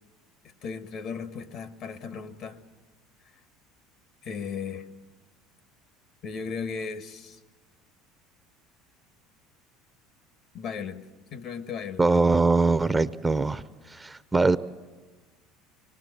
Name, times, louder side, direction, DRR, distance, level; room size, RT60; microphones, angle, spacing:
voice 1, 0.4-2.6 4.2-4.9 6.2-7.4 10.5-12.0, left 6 dB, 55° left, 1.4 m, -36 dB
voice 2, 12.0-14.6, right 3 dB, 15° right, 0.6 m, -22 dB
24.5 x 19.5 x 7.9 m
hypercardioid pair, 85°, 0 cm